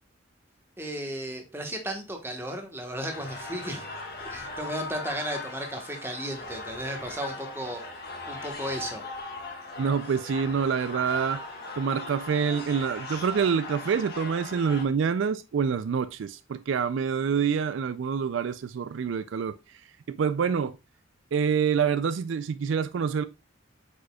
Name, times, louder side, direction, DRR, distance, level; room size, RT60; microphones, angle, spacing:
voice 1, 0.8-3.9 4.3-7.8 8.3-9.0, equal, 10° right, 1.2 m, -34 dB
sound 1, 3.0-14.8, left 3 dB, 50° left, 1.8 m, -39 dB
voice 2, 9.8-11.4 11.8-19.5 20.1-20.8 21.3-23.2, right 6 dB, 70° right, 0.3 m, -26 dB
8.1 x 5.2 x 2.3 m
head